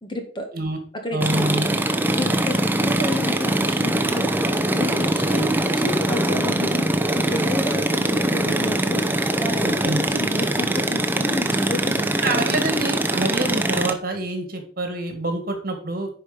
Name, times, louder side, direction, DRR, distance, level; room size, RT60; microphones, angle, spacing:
voice 1, 0.0-0.5 1.0-1.8 2.1-4.3 4.7-9.0 9.4-12.3, left 1 dB, 25° left, 4 dB, 1.6 m, -31 dB
voice 2, 1.1-1.7 9.6-10.0 12.2-16.1, right 2 dB, 50° right, 5 dB, 2.0 m, -26 dB
sound 1, 1.2-13.9, right 1 dB, 10° right, 0.7 m, -22 dB
10.0 x 4.9 x 5.1 m, 0.42 s
head